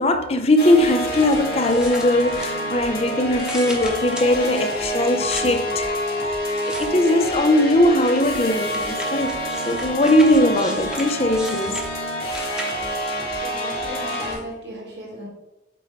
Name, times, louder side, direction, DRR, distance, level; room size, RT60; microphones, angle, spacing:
voice 1, 0.0-6.4 6.7-9.4 9.7-11.8, left 1 dB, 35° left, 0.5 m, -20 dB
sound 1, 0.6-14.3, equal, 55° left, 2.0 m, -27 dB
sound 2, 0.8-2.9 3.3-5.7 6.4-7.4 8.0-13.0 13.7-14.4, equal, 5° right, 0.9 m, -38 dB
voice 2, 13.1-15.3, equal, 75° right, 2.0 m, -36 dB
8.1 x 3.0 x 4.5 m
head